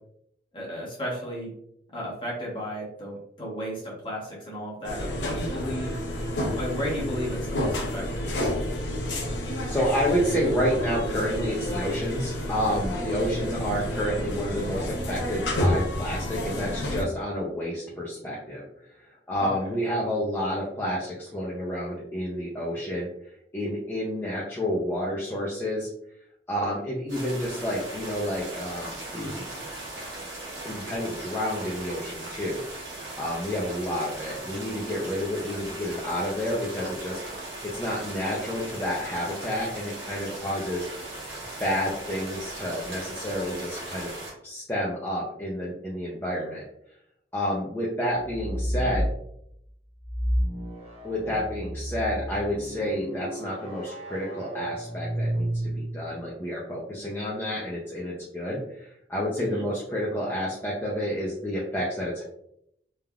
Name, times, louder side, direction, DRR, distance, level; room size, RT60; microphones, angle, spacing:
voice 1, 0.5-1.5 1.9-5.9 6.6-8.0 13.5-13.8 19.4-19.5 59.4-59.7, equal, 30° left, -4 dB, 1.0 m, -34 dB
sound 1, 4.8-17.0, left 1 dB, 75° left, 0.7 m, -30 dB
voice 2, 9.7-18.6 18.9-23.1 23.5-25.9 26.5-29.5 30.6-32.6 33.2-37.2 37.6-40.9 41.6-46.6 47.3-49.1 51.0-62.2, equal, 10° left, -6 dB, 0.4 m, -30 dB
sound 2, 27.1-44.3, right 2 dB, 80° right, 1.1 m, -38 dB
sound 3, 48.2-49.2 50.0-56.0, equal, 35° right, 0.8 m, -31 dB
3.3 x 2.3 x 2.2 m, 0.74 s
head